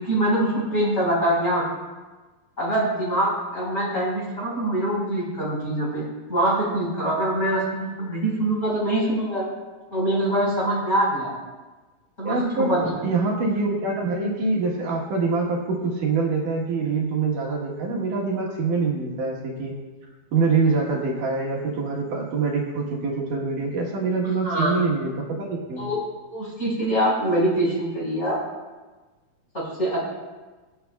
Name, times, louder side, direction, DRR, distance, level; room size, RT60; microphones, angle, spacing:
voice 1, 0.0-1.6 2.6-9.5 9.9-11.3 12.2-12.9 24.4-24.8 25.8-26.0 26.3-28.4 29.5-30.0, right 1 dB, 20° left, -6 dB, 4.1 m, -24 dB
voice 2, 12.2-19.7 20.3-25.9, right 4 dB, 70° right, -2 dB, 2.8 m, -25 dB
23.5 x 8.1 x 2.3 m, 1.3 s
omnidirectional pair, 4.0 m